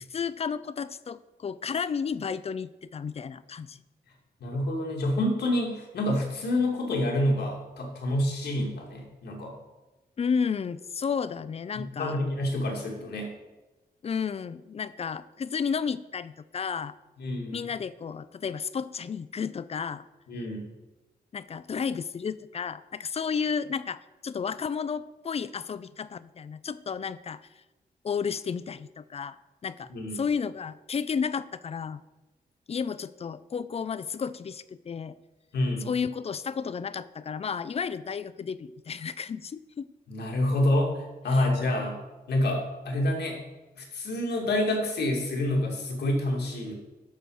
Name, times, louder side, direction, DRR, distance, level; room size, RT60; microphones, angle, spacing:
voice 1, 0.1-3.8 10.2-12.2 14.0-17.0 17.5-20.0 21.3-27.5 28.0-32.0 32.7-35.2 35.8-39.9 41.3-41.8, left 6 dB, 40° left, 16 dB, 0.4 m, -32 dB
voice 2, 4.4-9.5 11.7-13.3 17.2-17.6 20.3-20.7 29.9-30.2 35.5-35.9 40.1-42.0 42.3-43.4 43.8-46.7, left 1 dB, 85° left, 0 dB, 2.3 m, -28 dB
12.5 x 4.5 x 6.4 m, 1.1 s
wide cardioid pair, 120°, 17 cm